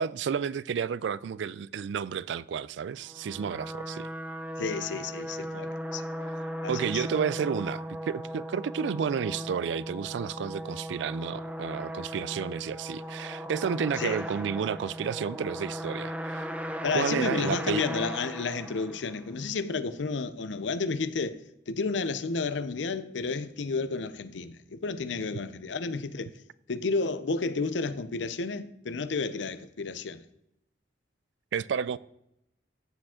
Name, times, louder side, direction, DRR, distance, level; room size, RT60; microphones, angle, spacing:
voice 1, 0.0-4.1 6.7-16.5 16.9-17.8 31.5-32.0, right 7 dB, 80° right, 0.3 m, -31 dB
sound 1, 3.0-19.3, equal, 5° right, 0.6 m, -37 dB
voice 2, 4.6-6.3 6.6-7.0 14.0-14.2 16.8-21.4 21.7-26.3 26.7-30.2, left 4 dB, 85° left, 0.6 m, -31 dB
15.0 x 5.0 x 3.7 m
head